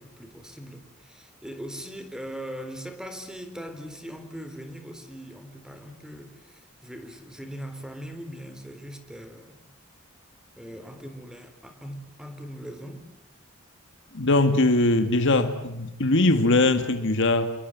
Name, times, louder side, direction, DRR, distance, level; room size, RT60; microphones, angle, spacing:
voice 1, 0.0-9.6 10.6-13.1, equal, 5° right, 8 dB, 3.9 m, -40 dB
voice 2, 14.1-17.5, left 2 dB, 60° left, 9 dB, 2.1 m, -21 dB
30.0 x 22.5 x 7.6 m, 0.90 s
head